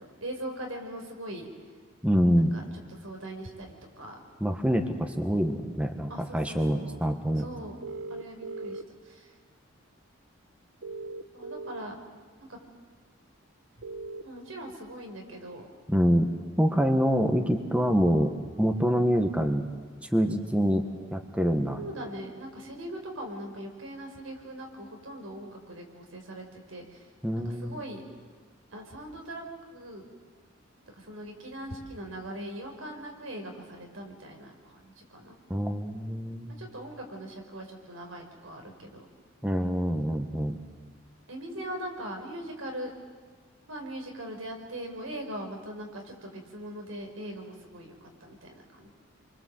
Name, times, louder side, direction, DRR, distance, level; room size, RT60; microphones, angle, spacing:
voice 1, 0.0-1.5 2.4-2.6 2.9-4.2 6.1-7.0 7.3-7.8 8.1-9.3 11.3-12.0 12.5-12.6 14.2-15.7 21.8-27.1 27.3-28.1 28.7-29.4 29.7-30.1 31.0-35.4 36.6-39.1 41.3-43.0 43.7-48.9, right 1 dB, 85° right, 2 dB, 5.4 m, -41 dB
voice 2, 2.0-2.5 4.4-7.5 15.9-16.3 16.6-19.6 20.1-20.9 21.1-21.8 27.2-27.8 35.5-36.5 39.4-40.6, equal, 5° right, 5 dB, 1.4 m, -25 dB
sound 1, 7.8-8.8 10.8-11.8 13.8-14.2, right 3 dB, 65° right, 1.2 m, -38 dB
29.5 x 24.5 x 7.8 m, 1.5 s
head